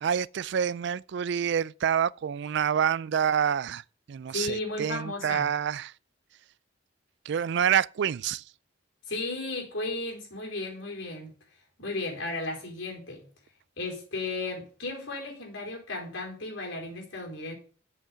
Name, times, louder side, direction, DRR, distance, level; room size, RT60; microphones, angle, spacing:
voice 1, 0.0-3.8 4.1-5.9 7.3-8.4, right 8 dB, 60° right, 0.3 m, -27 dB
voice 2, 4.3-5.5 9.1-11.3 11.8-13.3 13.8-17.5, left 2 dB, 80° left, 4.6 m, -34 dB
8.0 x 6.3 x 7.1 m
head